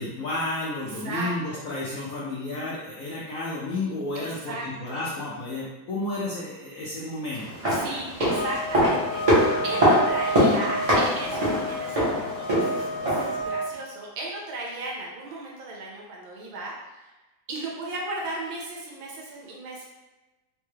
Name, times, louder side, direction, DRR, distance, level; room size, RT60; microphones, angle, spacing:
voice 1, 0.0-7.6, left 2 dB, 75° left, -7 dB, 0.7 m, -32 dB
voice 2, 0.8-1.6 4.1-5.0 7.7-17.1 17.5-19.9, right 2 dB, 85° right, -2 dB, 1.6 m, -36 dB
sound 1, 7.4-13.4 13.7-13.8, equal, 30° right, 0.7 m, -23 dB
sound 2, 8.3-13.7, equal, 55° right, 0.9 m, -31 dB
3.6 x 2.3 x 3.1 m, 1.1 s
omnidirectional pair, 2.1 m